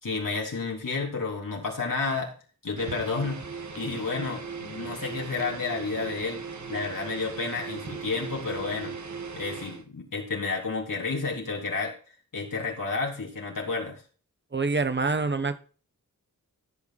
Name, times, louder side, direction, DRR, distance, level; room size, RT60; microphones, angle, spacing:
voice 1, 0.0-2.3 2.6-3.4 3.8-6.4 6.7-9.0 9.4-11.9 12.3-14.0, left 4 dB, 65° left, 3.6 m, -31 dB
sound 1, 2.8-9.9, right 5 dB, 55° right, 1.5 m, -38 dB
voice 2, 14.5-15.6, right 3 dB, 30° right, 1.2 m, -26 dB
15.0 x 6.9 x 4.2 m
wide cardioid pair, 85°, 35 cm